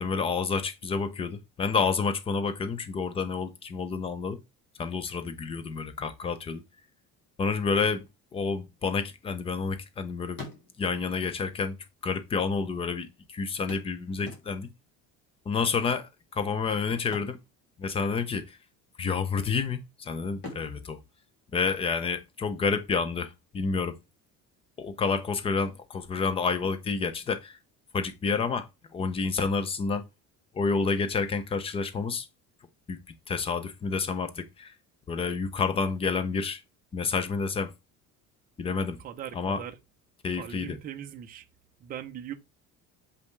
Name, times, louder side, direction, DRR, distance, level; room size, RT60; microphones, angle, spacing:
voice 1, 0.0-4.4 4.8-6.6 7.4-8.1 8.3-10.5 10.8-11.8 12.0-14.7 15.5-17.4 17.8-18.6 19.0-21.0 21.5-24.0 24.8-27.6 27.9-30.1 30.5-32.3 32.9-33.0 33.3-34.7 35.1-36.6 36.9-37.7 38.6-39.0 39.3-39.6 40.2-40.8, left 5 dB, 20° left, 0.6 m, -29 dB
sound 1, 9.1-9.9 10.2-11.1 12.0-12.1 12.3-12.4 13.7-14.9 16.9-18.2 18.5-18.8 19.3-19.9 20.3-22.1 24.1-24.2 24.6-24.7, left 3 dB, 35° left, 2.3 m, -46 dB
voice 2, 39.0-39.8 40.3-41.5 41.8-42.3, right 10 dB, 30° right, 0.6 m, -40 dB
6.8 x 5.3 x 3.2 m
cardioid pair, 175°, 31 cm